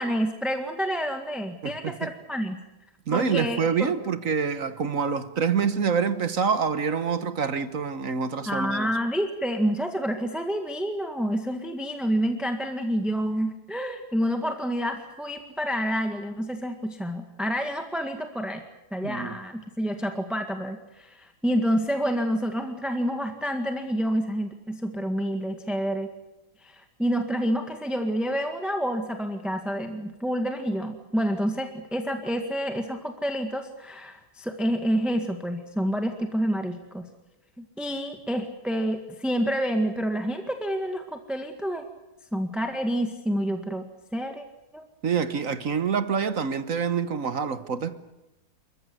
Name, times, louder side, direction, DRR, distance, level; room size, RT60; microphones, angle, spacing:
voice 1, 0.0-2.6 3.1-3.9 8.4-18.6 18.9-26.1 26.6-37.1 37.6-41.9 42.3-43.9 44.1-44.4 44.7-44.9, equal, ahead, 1.6 m, -28 dB
voice 2, 1.6-2.1 3.1-8.9 19.0-19.4 45.0-48.0, right 6 dB, 55° right, 1.5 m, -26 dB
28.0 x 15.0 x 9.6 m
omnidirectional pair, 1.8 m